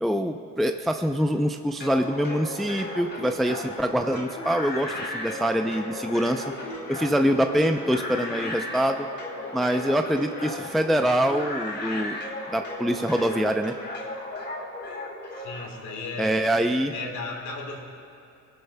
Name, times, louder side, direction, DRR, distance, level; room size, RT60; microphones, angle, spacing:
voice 1, 0.0-6.5 6.9-9.1 9.5-12.2 12.5-13.7 16.2-16.9, equal, ahead, 5 dB, 0.5 m, -25 dB
sound 1, 1.8-15.7, left 2 dB, 35° left, 3.3 m, -35 dB
Wind instrument woodwind instrument, 5.1-12.3, left 4 dB, 60° left, 2.6 m, -47 dB
voice 2, 15.4-16.4 16.9-17.8, left 3 dB, 85° left, -2 dB, 3.0 m, -35 dB
20.0 x 12.5 x 2.2 m, 2.6 s
cardioid pair, 90°, 30 cm